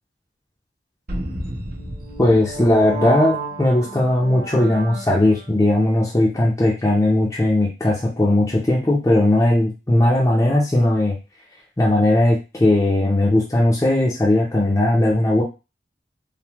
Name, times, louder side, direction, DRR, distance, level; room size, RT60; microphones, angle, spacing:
sound 1, 1.1-5.5, right 2 dB, 55° right, 0.8 m, -31 dB
voice 1, 2.2-11.2 11.8-15.4, left 1 dB, 20° left, -5 dB, 0.6 m, -18 dB
3.4 x 2.1 x 2.9 m, 0.29 s
head